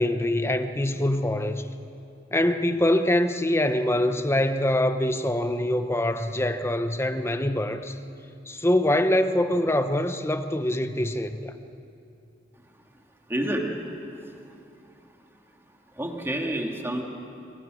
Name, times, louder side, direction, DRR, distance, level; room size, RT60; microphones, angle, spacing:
voice 1, 0.0-1.6 2.3-7.9 8.5-11.5, left 1 dB, 15° left, 1.0 m, -24 dB
voice 2, 13.3-13.7 16.0-17.0, right 1 dB, 15° right, 2.4 m, -28 dB
25.5 x 22.5 x 6.4 m
head